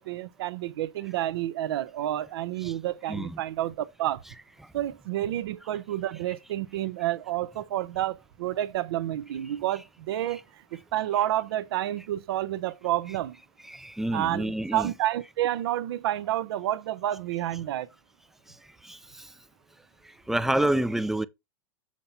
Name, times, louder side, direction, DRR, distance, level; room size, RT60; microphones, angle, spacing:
voice 1, 0.0-4.2 4.7-13.4 14.1-17.9, right 13 dB, 80° right, 0.6 m, -30 dB
voice 2, 13.6-14.9 18.8-19.3 20.3-21.3, right 1 dB, 5° right, 0.3 m, -28 dB
7.5 x 2.7 x 5.5 m
supercardioid pair, 140°, 13 cm